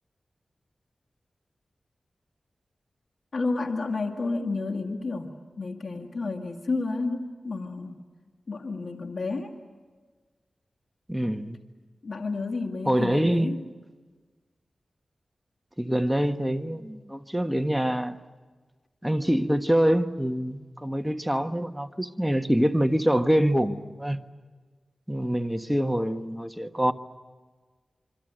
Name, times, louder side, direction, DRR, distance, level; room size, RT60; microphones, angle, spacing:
voice 1, 3.3-8.0 8.5-9.5 12.0-13.6, left 3 dB, 65° left, 2.2 m, -31 dB
voice 2, 11.1-11.6 12.9-13.5 15.8-18.2 19.0-24.2 25.1-26.9, equal, 5° right, 1.4 m, -25 dB
27.0 x 25.0 x 8.0 m
cardioid pair, 45°, 0 cm